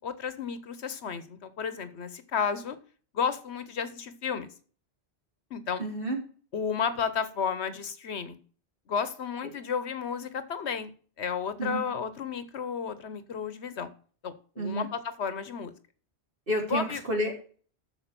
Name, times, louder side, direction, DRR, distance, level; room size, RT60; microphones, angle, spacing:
voice 1, 0.0-2.8 3.1-4.5 5.5-5.9 6.5-8.4 8.9-10.9 11.2-13.9 14.2-15.7 16.7-17.0, left 6 dB, 75° left, 13 dB, 1.2 m, -32 dB
voice 2, 5.8-6.2 11.6-11.8 14.6-14.9 16.5-17.3, right 1 dB, 55° right, 0 dB, 3.6 m, -30 dB
8.8 x 6.8 x 6.7 m, 0.43 s
omnidirectional pair, 1.1 m